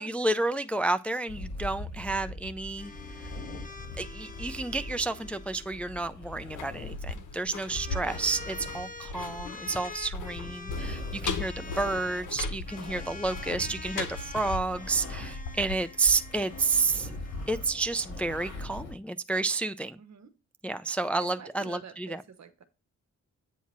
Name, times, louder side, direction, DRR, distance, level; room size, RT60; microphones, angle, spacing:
voice 1, 0.0-2.9 4.0-17.1 17.5-20.0 20.6-22.2, right 3 dB, 5° left, 0.3 m, -30 dB
sound 1, 1.3-15.6 15.9-19.0, left 2 dB, 55° left, 3.3 m, -41 dB
sound 2, 2.8-6.0 7.3-12.3 12.6-17.8, left 3 dB, 25° left, 0.7 m, -46 dB
sound 3, 6.4-17.2 17.5-17.6, left 4 dB, 85° left, 0.9 m, -39 dB
voice 2, 7.9-8.3 20.0-20.3 21.0-22.6, right 6 dB, 65° right, 1.1 m, -48 dB
8.4 x 2.8 x 5.9 m
cardioid pair, 85°, 30 cm